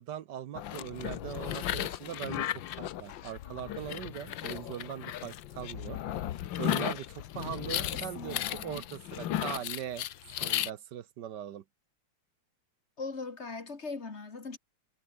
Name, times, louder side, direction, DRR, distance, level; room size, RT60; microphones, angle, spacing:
voice 1, 0.0-6.0 6.6-10.1 10.3-11.6, right 10 dB, 65° right, 1.3 m, -40 dB
sound 1, 0.6-10.7, left 12 dB, 70° left, 1.6 m, -35 dB
voice 2, 7.9-8.8 13.0-14.6, left 4 dB, 30° left, 2.3 m, -40 dB
omnidirectional pair, 2.3 m